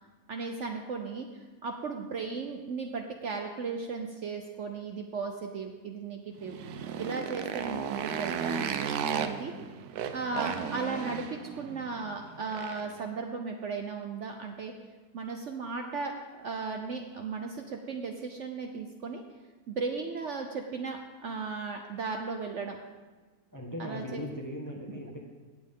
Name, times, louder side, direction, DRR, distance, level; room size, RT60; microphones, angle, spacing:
voice 1, 0.3-6.6 7.0-9.5 10.1-14.7 15.1-19.2 19.7-22.8 23.8-24.2, right 4 dB, 55° right, 3 dB, 1.0 m, -36 dB
Motorcycle, 6.4-13.0, right 7 dB, 80° right, 1.2 m, -35 dB
voice 2, 23.5-25.2, left 1 dB, 15° left, -1 dB, 1.2 m, -38 dB
17.0 x 7.6 x 3.7 m, 1.3 s
omnidirectional pair, 1.7 m